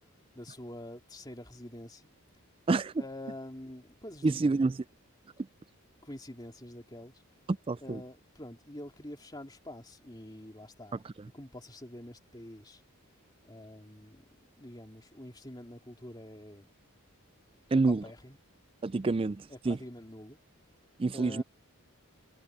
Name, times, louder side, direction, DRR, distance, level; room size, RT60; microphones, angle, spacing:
voice 1, 0.3-2.1 3.0-4.7 6.0-7.2 7.8-11.0 11.3-12.8 13.4-14.2 14.6-16.7 17.9-18.4 19.5-20.4 21.1-21.4, left 1 dB, 20° left, 3.0 m, -46 dB
voice 2, 4.2-4.7 7.5-8.0 17.7-18.0 18.8-19.8 21.0-21.4, right 3 dB, 25° right, 0.3 m, -27 dB
head